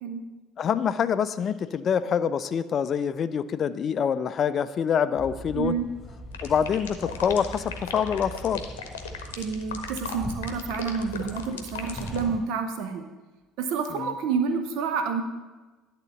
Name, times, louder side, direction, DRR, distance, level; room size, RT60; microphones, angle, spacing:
voice 1, 0.6-5.8 6.4-8.6 14.0-14.1, left 7 dB, 40° left, 13 dB, 0.4 m, -26 dB
sound 1, 5.2-12.4, equal, 5° right, 3.2 m, -40 dB
voice 2, 5.5-5.9 9.4-13.1 13.6-15.2, right 5 dB, 60° right, 7 dB, 0.6 m, -29 dB
sound 2, 6.3-12.2, left 7 dB, 75° left, 0.8 m, -36 dB
10.5 x 3.7 x 6.9 m, 1.2 s
figure-of-eight pair, 60°, 0 cm